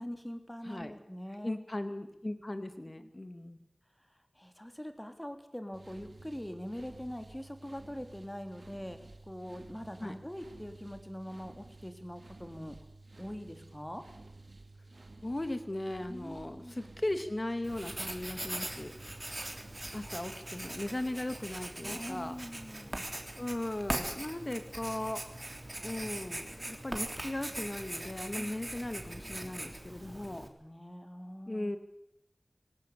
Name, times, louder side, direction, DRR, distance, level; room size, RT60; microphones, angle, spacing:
voice 1, 0.0-1.6 3.0-3.1 4.3-9.0 9.2-12.8 13.2-14.0 16.1-16.7 19.9-20.2 21.8-23.0 28.3-28.5 29.9-31.7, equal, 15° left, 7 dB, 3.2 m, -43 dB
voice 2, 1.4-3.6 10.0-10.1 15.2-18.9 19.9-22.3 23.4-25.2 25.8-30.5 31.5-31.8, left 1 dB, 40° left, 9 dB, 2.5 m, -37 dB
sound 1, 5.7-20.3, right 2 dB, 60° right, 2.2 m, -53 dB
Writing, 17.6-30.5, right 1 dB, 30° right, 3.4 m, -41 dB
19.0 x 18.0 x 8.4 m, 0.84 s
wide cardioid pair, 40°, 0 cm